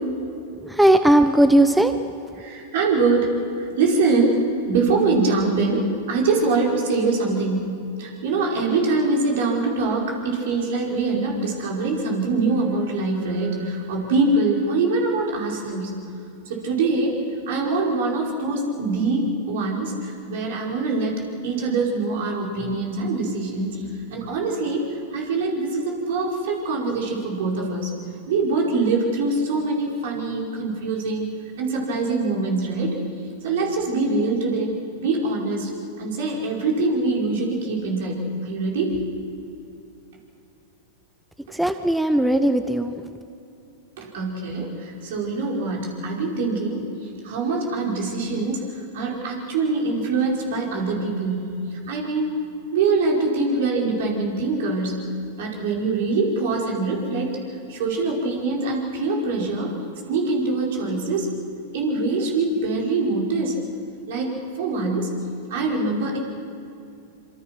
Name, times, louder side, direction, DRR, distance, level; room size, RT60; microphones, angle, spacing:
voice 1, 0.6-1.9 41.6-42.9, right 1 dB, 5° right, 9 dB, 0.9 m, -17 dB
voice 2, 2.4-3.3 3.6-4.4 4.7-15.9 16.5-17.2 17.5-27.9 28.3-31.3 31.6-33.0 33.4-34.7 35.0-35.7 36.0-39.0 44.0-52.3 52.7-55.0 55.4-57.4 57.7-59.7 60.1-61.3 61.7-63.6 64.1-65.1 65.5-66.2, right 3 dB, 65° right, -1 dB, 5.3 m, -24 dB
26.0 x 25.0 x 6.1 m, 2.5 s
hypercardioid pair, 105°, 0 cm